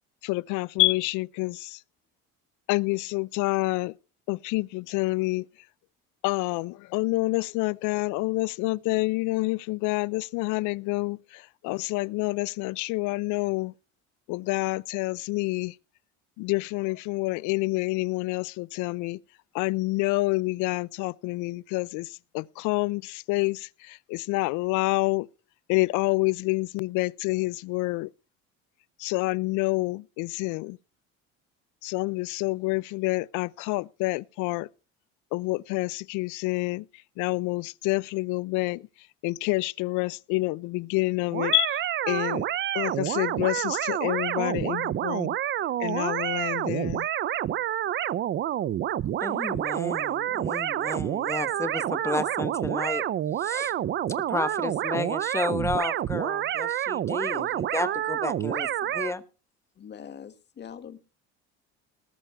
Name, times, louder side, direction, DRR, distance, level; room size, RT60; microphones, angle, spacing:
voice 1, 0.2-1.8 2.7-3.9 4.3-5.5 6.2-13.7 14.3-15.8 16.4-19.2 19.5-25.3 25.7-28.1 29.0-30.8 31.8-34.7 35.3-36.9 37.2-38.9 39.2-41.8 42.1-42.4 42.7-45.4 45.8-47.1, left 23 dB, 75° left, 0.5 m, -28 dB
sound 1, 41.3-59.1, right 12 dB, 40° right, 0.5 m, -28 dB
voice 2, 49.2-53.0 53.4-53.7 54.3-59.2, left 2 dB, 10° left, 1.1 m, -32 dB
voice 3, 59.7-61.0, left 8 dB, 35° left, 1.7 m, -43 dB
19.5 x 6.8 x 4.6 m
cardioid pair, 120°, 31 cm